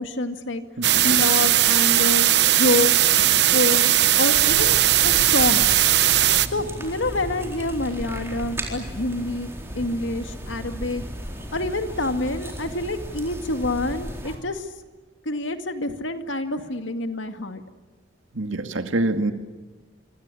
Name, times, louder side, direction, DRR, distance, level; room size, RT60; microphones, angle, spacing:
voice 1, 0.0-0.6 1.0-5.7 6.5-9.5 9.7-11.0 11.5-14.7 15.3-17.6, left 2 dB, 75° left, 7 dB, 2.2 m, -27 dB
sound 1, 0.8-6.5, right 12 dB, 55° right, 0.9 m, -18 dB
sound 2, 4.3-14.3, equal, 15° right, 4.1 m, -35 dB
voice 2, 18.3-19.3, right 2 dB, 85° right, 7 dB, 2.2 m, -25 dB
25.5 x 25.5 x 8.5 m, 1.3 s
head